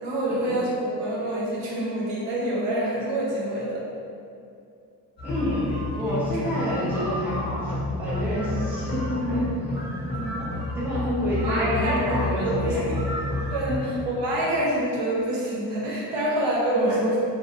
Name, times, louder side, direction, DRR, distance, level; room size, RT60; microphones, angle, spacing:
voice 1, 0.0-3.8 6.6-6.8 10.1-10.5 11.4-12.8 13.5-17.2, right 1 dB, 80° right, -5 dB, 0.8 m, -27 dB
sound 1, 5.2-13.8, left 2 dB, 25° left, 0.8 m, -30 dB
voice 2, 5.2-7.7 8.0-9.5 10.7-12.9 13.7-13.8 14.3-14.4 16.7-17.0, equal, 5° right, -9 dB, 0.4 m, -28 dB
2.6 x 2.0 x 2.7 m, 2.5 s
cardioid pair, 145°, 41 cm